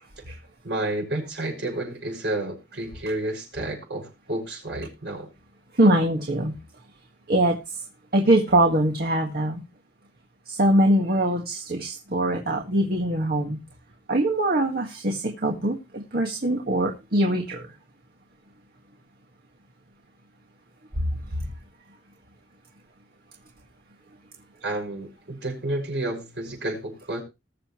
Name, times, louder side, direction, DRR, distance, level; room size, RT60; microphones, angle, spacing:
voice 1, 0.6-5.3 24.6-27.2, right 1 dB, 75° right, 0 dB, 6.0 m, -30 dB
voice 2, 5.7-6.5 7.3-7.6 8.1-9.6 10.5-13.6 14.1-17.7, right 1 dB, 60° right, 2 dB, 1.7 m, -22 dB
20.5 x 6.9 x 3.1 m, 0.26 s
head